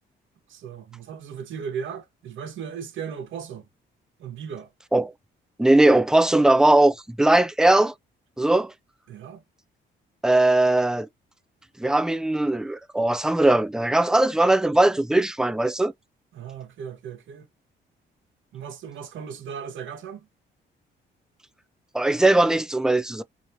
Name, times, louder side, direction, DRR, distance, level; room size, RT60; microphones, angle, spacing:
voice 1, 0.5-3.7 4.2-4.7 9.1-9.4 16.3-17.5 18.5-20.3, right 7 dB, 75° right, 1.1 m, -36 dB
voice 2, 5.6-7.9 8.4-8.7 10.2-11.1 11.8-15.9 21.9-23.2, right 2 dB, 5° right, 0.4 m, -19 dB
3.0 x 2.8 x 2.6 m
cardioid pair, 90°, 20 cm